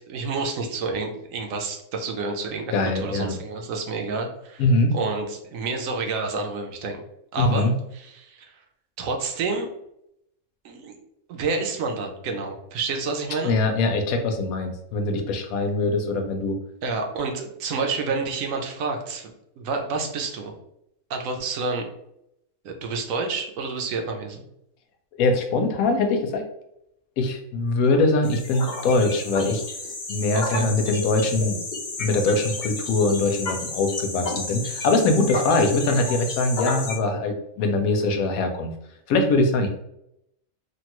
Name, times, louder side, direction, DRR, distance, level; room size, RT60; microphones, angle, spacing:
voice 1, 0.1-2.7 3.0-4.6 4.9-7.0 7.3-8.6 9.0-9.7 10.6-11.0 11.3-13.6 16.8-20.5 21.1-21.9 22.6-24.4 30.3-30.7, right 4 dB, 75° right, 3 dB, 1.0 m, -29 dB
voice 2, 2.7-3.4 4.6-4.9 7.4-7.8 13.4-16.6 25.2-26.5 27.2-29.6 30.1-31.6 32.0-38.7 39.1-39.7, left 2 dB, 85° left, 5 dB, 1.0 m, -22 dB
sound 1, 28.2-37.0, left 3 dB, 50° left, 0.6 m, -32 dB
3.1 x 2.3 x 2.9 m, 0.78 s
omnidirectional pair, 1.5 m